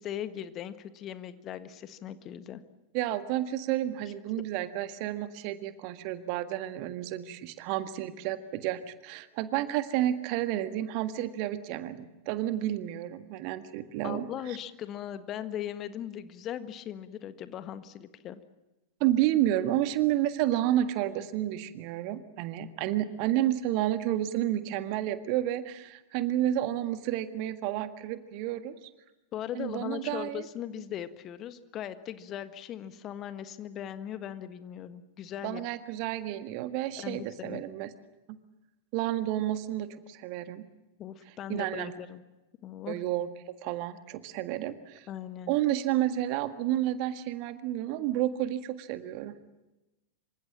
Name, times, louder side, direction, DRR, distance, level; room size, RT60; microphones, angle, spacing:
voice 1, 0.0-2.6 14.0-18.4 29.3-35.6 37.0-37.6 41.0-42.2 42.6-43.0 45.1-45.5, left 10 dB, 30° left, 12 dB, 1.5 m, -39 dB
voice 2, 2.9-14.3 19.0-28.9 29.5-30.4 35.4-37.9 38.3-38.4 38.9-40.6 41.5-41.9 42.9-43.3 43.6-45.1 45.5-49.3, right 13 dB, 45° right, 10 dB, 1.7 m, -30 dB
27.0 x 25.0 x 7.4 m, 1.0 s
figure-of-eight pair, 90°, 0 cm